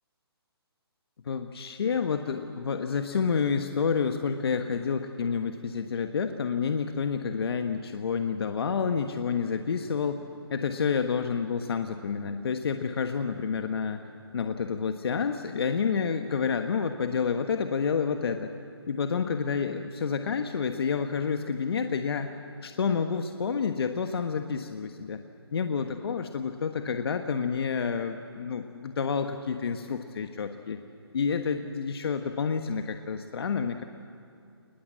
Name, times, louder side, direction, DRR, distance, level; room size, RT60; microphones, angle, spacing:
voice 1, 1.2-10.2 10.5-14.0 14.3-18.5 18.9-22.3 22.6-25.2 25.5-30.8 31.1-33.8, left 6 dB, 65° left, 6 dB, 1.3 m, -29 dB
27.5 x 20.5 x 7.6 m, 2.6 s
hypercardioid pair, 145°, 14 cm